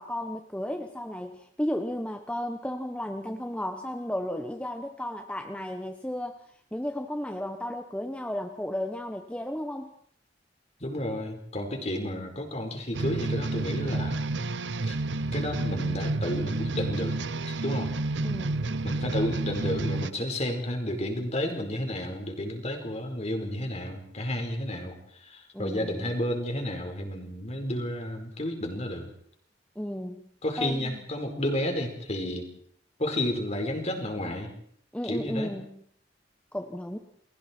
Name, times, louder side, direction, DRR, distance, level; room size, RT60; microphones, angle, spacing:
voice 1, 0.0-6.4 6.7-9.9 18.2-18.8 25.5-26.0 29.7-30.2 30.6-31.0 34.9-35.8 36.5-37.0, left 1 dB, 5° left, 5 dB, 1.2 m, -34 dB
voice 2, 10.8-14.2 14.8-15.0 15.3-17.2 17.5-17.9 18.8-29.1 30.4-32.5 33.0-34.5 35.0-35.6, left 1 dB, 35° left, 4 dB, 4.7 m, -31 dB
sound 1, 12.9-20.1, right 2 dB, 75° right, 0.8 m, -30 dB
29.5 x 22.0 x 4.6 m, 0.63 s
head